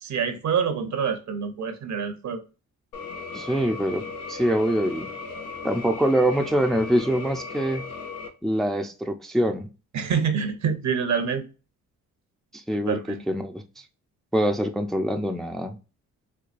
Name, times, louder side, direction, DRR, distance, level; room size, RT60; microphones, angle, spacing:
voice 1, 0.0-2.4 9.9-11.4 12.9-13.2, right 6 dB, 60° right, 0.8 m, -26 dB
sound 1, 2.9-8.3, left 4 dB, 80° left, 0.8 m, -37 dB
voice 2, 3.3-5.1 5.6-7.9 8.4-9.7 12.5-13.6 14.3-15.8, equal, ahead, 0.5 m, -24 dB
4.6 x 2.2 x 2.5 m
cardioid pair, 70°, 32 cm